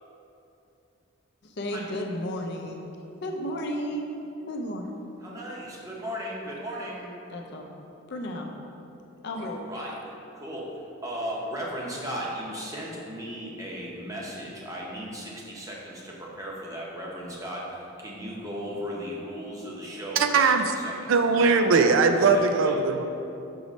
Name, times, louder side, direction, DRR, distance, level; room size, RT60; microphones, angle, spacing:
voice 1, 1.4-2.9 3.2-4.2 4.5-4.9 7.3-7.7 8.1-8.5 9.2-9.6, equal, 55° left, 2 dB, 0.5 m, -33 dB
voice 2, 5.2-7.1 9.3-10.0 10.3-10.7 11.0-20.5 20.8-21.9 22.7-22.8, equal, 15° right, -4 dB, 0.8 m, -36 dB
voice 3, 20.2-20.7 21.1-23.0, right 4 dB, 65° right, 6 dB, 0.3 m, -20 dB
6.2 x 3.1 x 5.1 m, 2.8 s
head